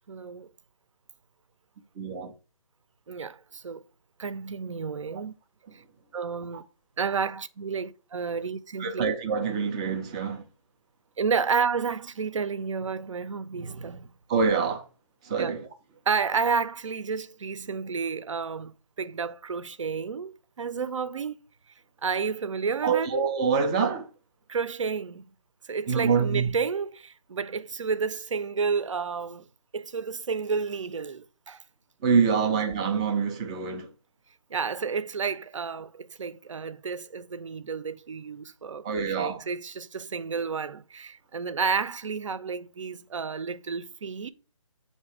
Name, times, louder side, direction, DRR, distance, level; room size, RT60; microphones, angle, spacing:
voice 1, 0.1-0.5 3.1-3.8 4.2-5.3 6.1-6.6 7.0-9.1 11.2-14.1 15.4-15.5 16.1-18.7 19.0-21.4 22.0-23.2 24.5-25.2 25.7-29.4 29.7-31.6 32.3-32.5 34.5-44.3, right 5 dB, 65° right, 0.6 m, -31 dB
voice 2, 2.0-2.3 5.1-5.2 6.5-6.6 8.8-10.4 14.3-14.8 15.3-15.6 22.8-24.1 25.9-26.5 32.0-33.9 38.8-39.4, right 5 dB, 10° right, 0.4 m, -25 dB
7.7 x 2.9 x 4.7 m
figure-of-eight pair, 155°, 18 cm